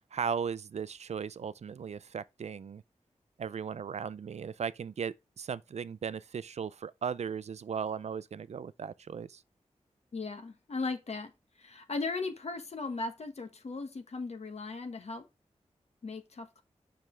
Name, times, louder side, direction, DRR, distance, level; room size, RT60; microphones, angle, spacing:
voice 1, 0.1-2.8 3.4-9.4, right 6 dB, 70° right, 0.4 m, -37 dB
voice 2, 10.1-15.3 16.0-16.6, left 3 dB, 65° left, 1.5 m, -37 dB
7.0 x 6.0 x 3.2 m
wide cardioid pair, 80°, 12 cm